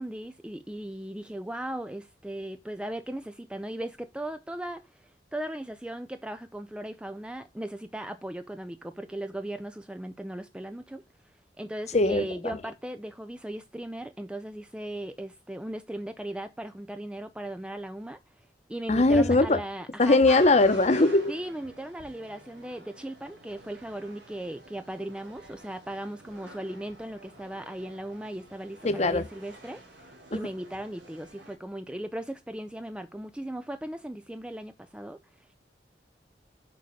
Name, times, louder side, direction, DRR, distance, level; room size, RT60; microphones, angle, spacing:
voice 1, 0.0-11.0 11.6-18.4 18.7-20.2 21.3-35.5, right 1 dB, 5° right, 0.4 m, -37 dB
voice 2, 11.9-12.6 18.9-19.6 20.0-21.3 28.8-29.3, left 2 dB, 40° left, 0.9 m, -21 dB
sound 1, 20.3-31.6, right 1 dB, 90° right, 3.0 m, -47 dB
6.7 x 5.0 x 6.5 m
head